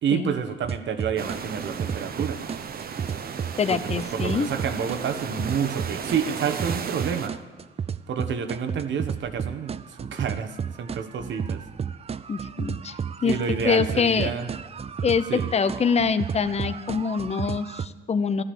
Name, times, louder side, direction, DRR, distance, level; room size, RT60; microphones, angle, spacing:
voice 1, 0.0-2.4 3.7-3.8 4.1-7.3 8.1-11.6 13.2-14.5 15.3-15.5, right 7 dB, 70° right, 8 dB, 1.3 m, -29 dB
sound 1, 0.6-1.4 1.8-6.2 6.6-17.9, right 7 dB, 30° right, 0.5 m, -32 dB
sound 2, 1.2-7.3, right 7 dB, 50° right, 0.9 m, -35 dB
voice 2, 3.6-4.5 12.3-12.9 13.2-13.3 13.6-14.3 15.0-15.2 15.5-18.4, left 6 dB, 30° left, 13 dB, 0.8 m, -24 dB
13.5 x 12.0 x 7.2 m, 1.2 s
cardioid pair, 90°, 20 cm